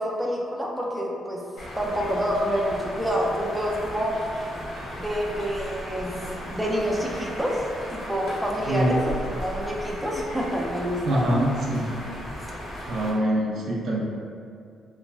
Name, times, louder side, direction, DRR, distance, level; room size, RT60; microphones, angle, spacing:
voice 1, 0.0-1.4 1.8-4.2 4.9-6.2 6.5-7.6 7.9-11.3, equal, 5° right, -3 dB, 0.4 m, -27 dB
sound 1, 1.6-13.1, equal, 75° left, 0.9 m, -36 dB
voice 2, 11.0-11.9 12.9-14.0, right 1 dB, 70° right, -3 dB, 0.5 m, -24 dB
3.2 x 2.1 x 2.4 m, 2.3 s
cardioid pair, 90°, 0 cm